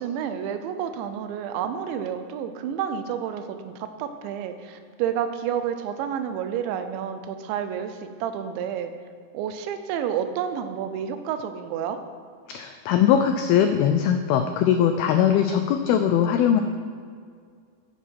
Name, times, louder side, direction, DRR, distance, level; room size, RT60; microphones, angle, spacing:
voice 1, 0.0-8.9 9.3-12.0, right 8 dB, 90° right, 9 dB, 3.1 m, -30 dB
voice 2, 12.5-16.6, left 9 dB, 85° left, 6 dB, 2.1 m, -21 dB
12.5 x 10.0 x 4.6 m, 2.1 s
omnidirectional pair, 5.1 m